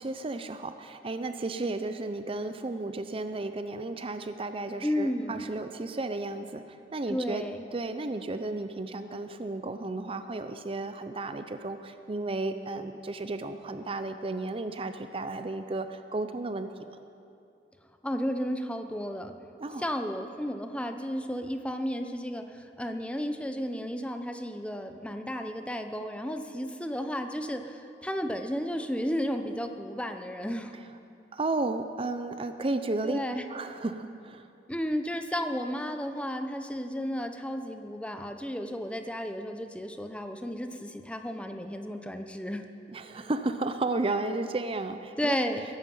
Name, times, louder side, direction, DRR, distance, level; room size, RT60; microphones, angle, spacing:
voice 1, 0.0-6.6 6.9-7.4 7.7-16.7 19.6-19.8 31.3-33.2 33.5-34.4 42.9-45.4, right 2 dB, 30° right, 9 dB, 0.6 m, -33 dB
voice 2, 4.8-5.5 7.1-7.6 18.0-19.3 19.8-30.7 33.0-33.4 34.7-42.6 45.2-45.6, equal, 5° left, 6 dB, 0.7 m, -33 dB
21.5 x 11.5 x 5.6 m, 2.6 s
head